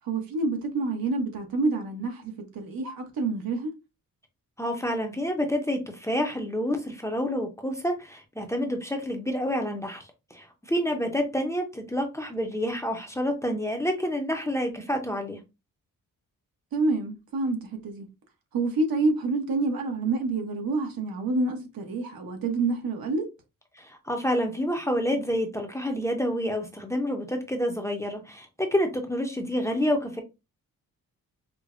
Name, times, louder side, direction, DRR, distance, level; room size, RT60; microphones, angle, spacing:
voice 1, 0.0-3.7 16.7-18.1 18.5-23.3, right 3 dB, 80° right, 1.1 m, -28 dB
voice 2, 4.6-15.4 23.7-30.2, equal, 10° left, 0.5 m, -28 dB
4.9 x 2.1 x 2.5 m
wide cardioid pair, 140°, 35 cm